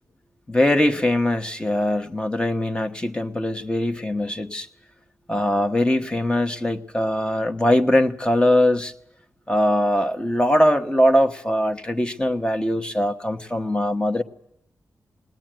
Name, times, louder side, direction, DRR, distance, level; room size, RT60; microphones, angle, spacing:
voice 1, 0.5-4.7 5.3-8.9 9.5-14.2, left 1 dB, 15° left, 1.3 m, -21 dB
20.0 x 20.0 x 9.1 m
wide cardioid pair, 100°, 6 cm